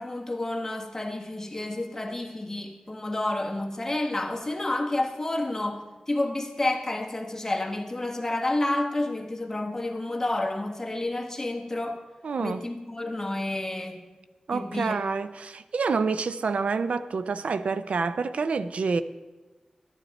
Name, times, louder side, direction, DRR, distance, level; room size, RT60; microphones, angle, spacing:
voice 1, 0.0-12.0 12.4-14.0 14.5-15.0, left 2 dB, 20° left, 1.3 m, -30 dB
voice 2, 12.2-12.6 14.5-19.0, right 4 dB, 80° right, 0.4 m, -27 dB
13.0 x 9.9 x 4.1 m
wide cardioid pair, 100°, 2 cm